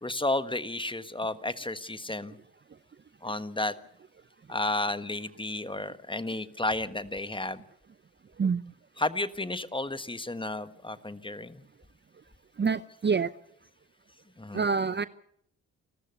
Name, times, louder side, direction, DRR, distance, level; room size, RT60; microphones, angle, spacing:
voice 1, 0.0-2.4 3.2-3.7 4.5-7.6 9.0-11.6 14.4-14.7, left 2 dB, 15° left, 12 dB, 1.4 m, -32 dB
voice 2, 8.4-8.8 12.5-13.3 14.5-15.1, right 5 dB, 30° right, 15 dB, 0.7 m, -28 dB
29.0 x 13.5 x 6.9 m, 0.69 s
hypercardioid pair, 45°, 38 cm